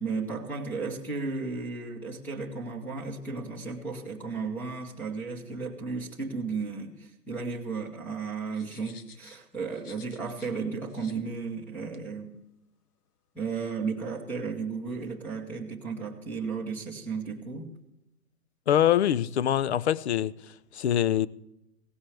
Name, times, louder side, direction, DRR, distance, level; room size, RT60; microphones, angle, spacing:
voice 1, 0.0-12.3 13.3-17.7, right 4 dB, 5° left, 0.9 m, -34 dB
sound 1, 8.5-10.6 10.9-11.2 11.9-12.0, left 6 dB, 70° left, 1.5 m, -53 dB
voice 2, 18.7-20.3 20.7-21.3, left 10 dB, 45° left, 0.5 m, -24 dB
17.0 x 15.5 x 3.3 m
hypercardioid pair, 155°, 47 cm